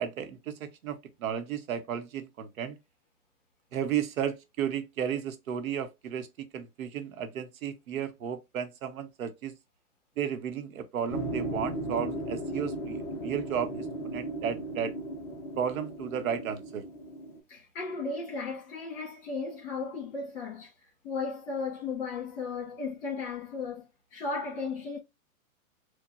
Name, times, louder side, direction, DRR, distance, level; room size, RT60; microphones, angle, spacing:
voice 1, 0.0-2.8 3.7-9.5 10.2-14.9 15.6-16.8, right 8 dB, 70° right, 1.0 m, -34 dB
sound 1, 11.1-17.4, right 1 dB, 5° left, 0.6 m, -36 dB
voice 2, 17.5-20.7 21.0-25.0, left 4 dB, 35° left, 1.7 m, -35 dB
4.6 x 2.3 x 2.5 m
hypercardioid pair, 145°, 43 cm